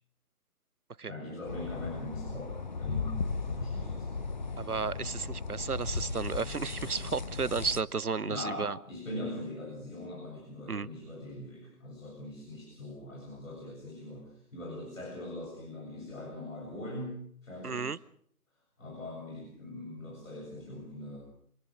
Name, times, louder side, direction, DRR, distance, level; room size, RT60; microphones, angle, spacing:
voice 1, 1.1-4.1 8.2-17.9 18.8-21.3, left 1 dB, 60° left, 0 dB, 7.5 m, -42 dB
sound 1, 1.5-7.8, left 4 dB, 30° left, 0.9 m, -36 dB
voice 2, 4.6-8.8 10.7-10.9 17.6-18.0, right 5 dB, 80° right, 21 dB, 1.0 m, -33 dB
26.5 x 19.0 x 6.4 m, 0.62 s
figure-of-eight pair, 150°, 44 cm